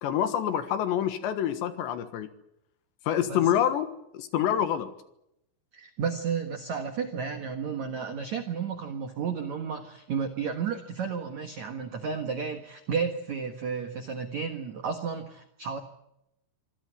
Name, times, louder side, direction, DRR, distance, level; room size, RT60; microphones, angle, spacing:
voice 1, 0.0-2.3 3.1-4.9, left 10 dB, 70° left, 10 dB, 3.4 m, -27 dB
voice 2, 5.7-15.8, right 6 dB, 70° right, 7 dB, 1.7 m, -32 dB
26.5 x 16.5 x 9.6 m, 0.82 s
omnidirectional pair, 5.8 m